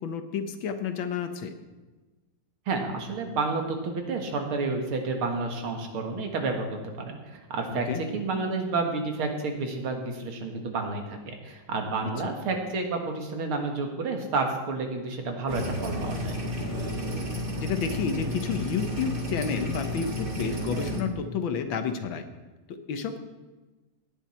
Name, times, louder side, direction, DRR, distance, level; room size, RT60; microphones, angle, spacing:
voice 1, 0.0-1.5 7.7-8.0 12.0-12.3 17.6-22.3 22.7-23.2, left 6 dB, 70° left, 8 dB, 1.7 m, -31 dB
voice 2, 2.7-7.9 8.1-16.4, right 3 dB, 80° right, 3 dB, 2.6 m, -30 dB
sound 1, 15.5-21.0, left 1 dB, 30° right, 1.5 m, -32 dB
17.5 x 10.0 x 4.4 m, 1.2 s
omnidirectional pair, 2.3 m